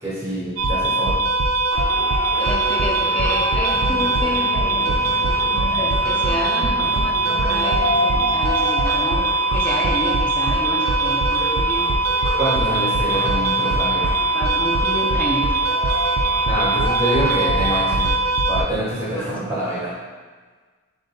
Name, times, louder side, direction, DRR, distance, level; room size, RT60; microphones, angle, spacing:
voice 1, 0.0-1.1 12.4-14.1 16.4-18.1 18.5-19.9, right 1 dB, 15° right, -9 dB, 1.5 m, -25 dB
sound 1, 0.6-18.6, right 2 dB, 65° right, 0.4 m, -21 dB
sound 2, 1.7-17.9, left 1 dB, 70° left, 0.6 m, -31 dB
voice 2, 2.4-4.9 5.7-11.9 14.3-15.6 19.1-19.3, equal, 5° left, -4 dB, 0.4 m, -29 dB
sound 3, 3.0-8.4, right 4 dB, 40° right, 0.8 m, -36 dB
4.0 x 3.5 x 2.7 m, 1.4 s
head